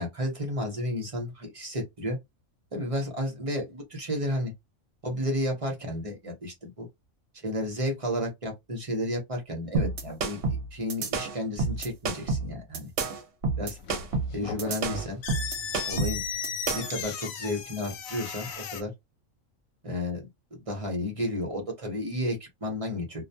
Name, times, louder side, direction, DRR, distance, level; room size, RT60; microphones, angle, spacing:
voice 1, 0.0-2.2 2.7-4.5 5.0-6.9 7.4-12.9 13.6-13.8 14.3-15.2 15.9-16.2 16.7-18.9 19.8-23.2, left 1 dB, 35° right, 0.7 m, -32 dB
sound 1, 9.7-17.0, right 3 dB, 60° right, 0.8 m, -29 dB
sound 2, 13.8-18.8, left 6 dB, 85° left, 1.0 m, -36 dB
2.3 x 2.2 x 2.7 m
omnidirectional pair, 1.4 m